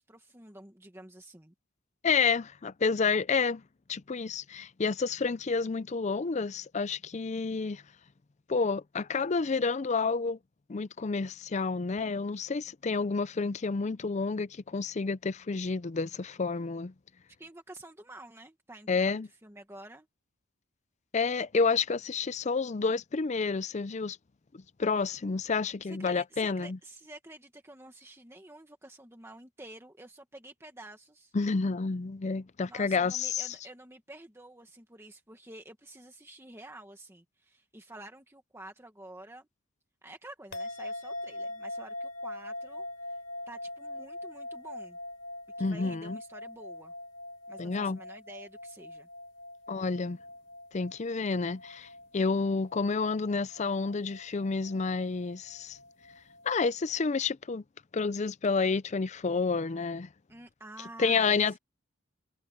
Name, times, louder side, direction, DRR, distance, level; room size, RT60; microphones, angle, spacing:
voice 1, 0.0-1.5 17.4-20.1 25.8-31.3 32.7-39.5 40.0-43.2 43.5-45.0 45.6-46.9 47.5-49.1 60.3-61.6, right 1 dB, 10° right, 1.6 m, -49 dB
voice 2, 2.0-3.6 3.9-7.8 8.5-10.4 10.7-16.9 18.9-19.3 21.1-24.2 24.5-26.8 31.3-33.6 45.6-46.2 47.6-48.0 49.7-50.2 50.7-55.8 56.5-57.6 57.9-60.1 61.0-61.6, left 4 dB, 35° left, 0.5 m, -29 dB
sound 1, 40.5-57.0, left 1 dB, 60° left, 5.2 m, -43 dB
head